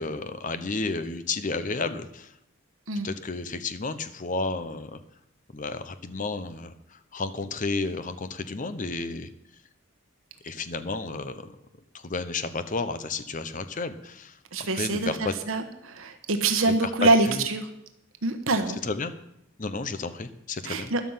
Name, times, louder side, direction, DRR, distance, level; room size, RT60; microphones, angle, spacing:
voice 1, 0.0-2.3 3.0-5.0 5.5-9.3 10.4-11.6 11.9-14.3 14.7-15.3 16.6-17.4 18.8-19.1 19.6-20.9, left 3 dB, 40° left, 11 dB, 0.8 m, -32 dB
voice 2, 14.5-17.7 18.2-18.8 20.6-21.0, right 2 dB, 75° right, 6 dB, 1.2 m, -25 dB
13.0 x 11.0 x 5.7 m, 0.82 s
head